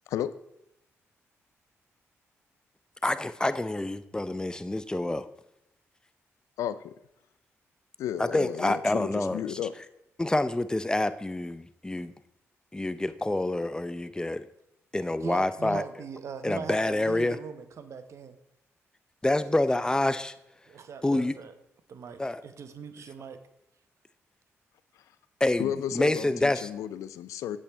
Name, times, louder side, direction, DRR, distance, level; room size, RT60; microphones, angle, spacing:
voice 1, 3.0-5.3 8.2-9.7 10.2-12.1 12.7-14.5 14.9-15.8 16.4-17.4 19.2-20.3 21.0-21.4 22.2-22.4 25.4-26.7, left 2 dB, 15° left, 14 dB, 0.5 m, -27 dB
voice 2, 6.6-6.9 8.0-9.7 25.6-27.6, left 10 dB, 90° left, 15 dB, 0.4 m, -33 dB
voice 3, 15.2-18.3 19.7-20.1 20.7-21.5 21.9-23.4, right 6 dB, 65° right, 10 dB, 0.8 m, -40 dB
8.8 x 8.1 x 3.4 m, 0.85 s
cardioid pair, 65°, 5 cm